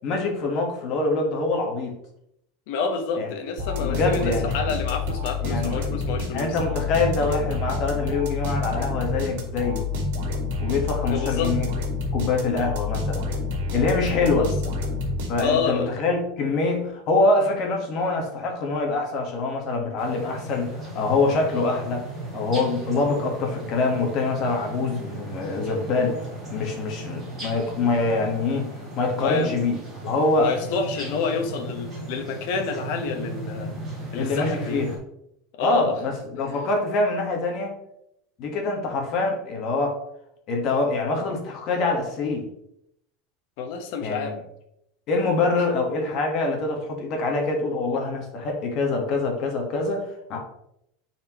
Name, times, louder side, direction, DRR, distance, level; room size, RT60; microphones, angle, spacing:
voice 1, 0.0-2.0 3.2-3.3 3.8-4.6 5.4-5.7 6.3-9.9 10.6-11.7 12.1-13.2 13.7-14.5 15.3-22.0 22.3-28.7 28.9-29.8 30.0-30.5 34.1-34.9 35.6-37.7 38.4-39.9 40.5-42.5 44.0-44.4 45.1-50.4, left 3 dB, 35° left, 2 dB, 1.4 m, -25 dB
voice 2, 2.7-6.6 11.1-11.5 14.2-14.5 15.4-16.0 29.2-29.6 30.4-33.7 34.1-34.8 35.6-35.9 43.6-44.4, left 5 dB, 55° left, 5 dB, 1.1 m, -28 dB
sound 1, 3.6-15.8, left 3 dB, 70° right, 1.8 m, -28 dB
sound 2, 20.0-35.0, right 1 dB, 10° right, 2.4 m, -36 dB
9.7 x 4.4 x 3.0 m, 0.77 s
supercardioid pair, 180°, 0 cm